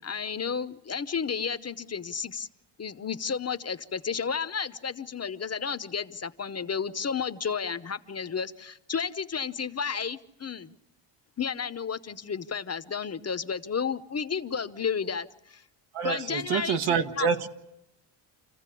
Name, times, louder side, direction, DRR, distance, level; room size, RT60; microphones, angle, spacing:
voice 1, 0.0-2.5 2.8-10.7 11.4-15.6 16.0-17.3, left 6 dB, 30° left, 13 dB, 0.9 m, -32 dB
voice 2, 15.9-17.5, right 6 dB, 75° right, 8 dB, 1.6 m, -27 dB
28.0 x 15.0 x 8.4 m, 0.90 s
cardioid pair, 80°, 50 cm